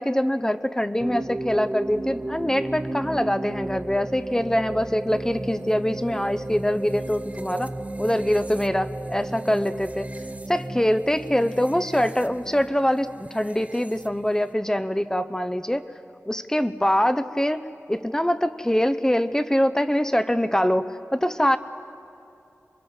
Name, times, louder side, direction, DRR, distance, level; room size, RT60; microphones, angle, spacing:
voice 1, 0.0-7.7 8.0-10.1 10.5-15.8 16.3-17.6 17.9-21.6, equal, 10° left, 12 dB, 0.8 m, -24 dB
sound 1, 1.0-14.5, right 2 dB, 25° right, 0.7 m, -34 dB
28.0 x 23.0 x 4.4 m, 2.6 s
wide cardioid pair, 60°, 5 cm